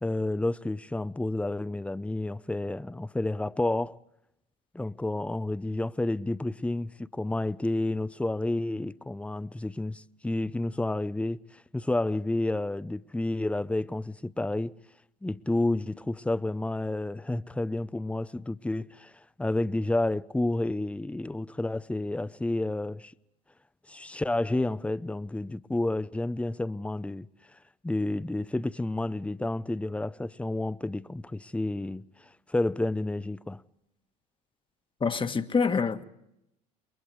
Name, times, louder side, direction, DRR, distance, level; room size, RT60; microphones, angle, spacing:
voice 1, 0.0-4.0 4.7-14.7 15.2-19.1 19.4-23.1 23.9-27.3 27.8-32.1 32.5-33.6, left 2 dB, 5° left, 0.7 m, -30 dB
voice 2, 35.0-36.0, left 5 dB, 25° left, 1.6 m, -26 dB
29.5 x 22.0 x 4.7 m
hypercardioid pair, 75°, 20 cm